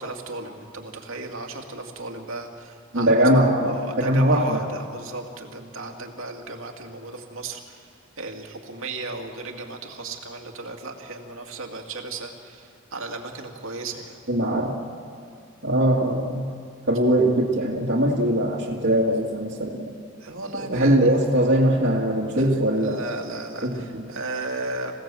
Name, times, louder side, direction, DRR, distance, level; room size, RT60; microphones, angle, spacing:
voice 1, 0.0-3.2 3.6-7.8 8.2-14.2 20.2-21.1 22.3-24.9, right 3 dB, 85° right, 2 dB, 2.4 m, -35 dB
voice 2, 2.9-4.6 14.3-14.7 15.6-16.5 16.9-19.9 20.7-23.1 23.6-24.0, right 1 dB, 60° right, -6 dB, 2.0 m, -21 dB
27.0 x 16.5 x 7.6 m, 2.4 s
head